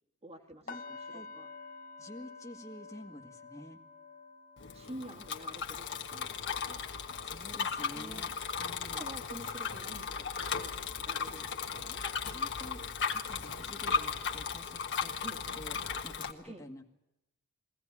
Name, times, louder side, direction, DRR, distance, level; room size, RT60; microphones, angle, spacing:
voice 1, 0.2-1.5 4.7-6.9 7.9-8.3 8.8-10.7 11.1-12.0 15.2-15.4 16.4-16.6, right 1 dB, 30° right, 3 dB, 1.9 m, -48 dB
sound 1, 0.7-10.6 10.9-11.2 11.7-11.8, left 4 dB, 40° left, 1.4 m, -52 dB
voice 2, 2.0-3.8 7.2-8.3 8.6-9.0 12.2-12.8 13.1-15.1 15.5-16.8, left 1 dB, 15° left, 2 dB, 1.6 m, -49 dB
Bicycle, 4.6-16.3, left 6 dB, 60° left, 1.5 m, -36 dB
22.0 x 17.5 x 9.6 m, 0.90 s
head